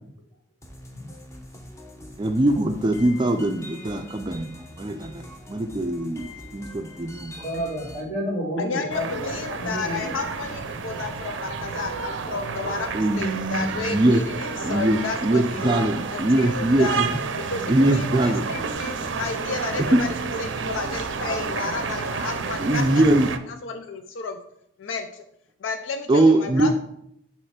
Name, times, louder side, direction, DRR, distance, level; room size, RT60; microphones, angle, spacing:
sound 1, 0.6-8.0, left 1 dB, 15° left, 0.8 m, -43 dB
voice 1, 2.2-4.5 4.8-5.2 5.5-6.3 6.5-7.3 12.9-14.2 14.6-17.1 17.7-18.4 19.9-20.0 22.6-23.3 26.1-26.8, right 1 dB, 25° right, 7 dB, 0.4 m, -21 dB
voice 2, 7.3-10.1, equal, 40° left, -6 dB, 2.7 m, -30 dB
voice 3, 8.6-15.8 16.1-17.0 17.5-20.1 20.4-23.0 23.5-24.4 24.8-25.2 25.6-26.8, left 4 dB, 85° left, 6 dB, 0.5 m, -32 dB
sound 2, 8.9-23.4, right 5 dB, 75° right, 0.5 m, -30 dB
6.5 x 3.1 x 5.8 m, 0.73 s
head